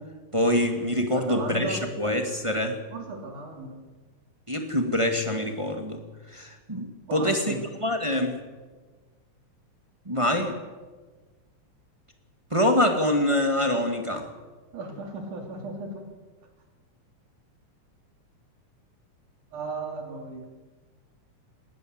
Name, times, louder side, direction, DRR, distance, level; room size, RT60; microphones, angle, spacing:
voice 1, 0.3-2.7 4.5-6.0 6.3-7.4 7.8-8.4 10.0-10.6 12.5-14.3, left 1 dB, 15° right, 4 dB, 1.5 m, -25 dB
voice 2, 1.1-1.8 2.9-3.8 7.1-7.6 14.7-16.1 19.5-20.5, right 3 dB, 85° right, 2 dB, 4.7 m, -36 dB
19.5 x 19.5 x 8.0 m, 1.3 s
omnidirectional pair, 3.4 m